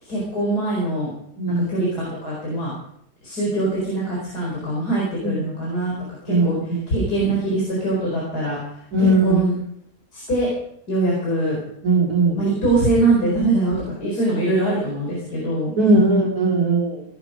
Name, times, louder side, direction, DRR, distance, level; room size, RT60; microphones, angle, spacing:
voice 1, 0.0-1.1 1.5-2.7 3.2-5.9 6.2-6.6 6.9-9.5 10.1-10.5 10.9-11.6 12.3-16.2, right 2 dB, 90° left, -4 dB, 5.0 m, -23 dB
voice 2, 6.3-6.9 8.9-9.4 11.8-12.4 15.8-17.0, right 2 dB, 75° right, -2 dB, 3.9 m, -19 dB
18.0 x 11.0 x 5.1 m, 0.71 s
omnidirectional pair, 1.6 m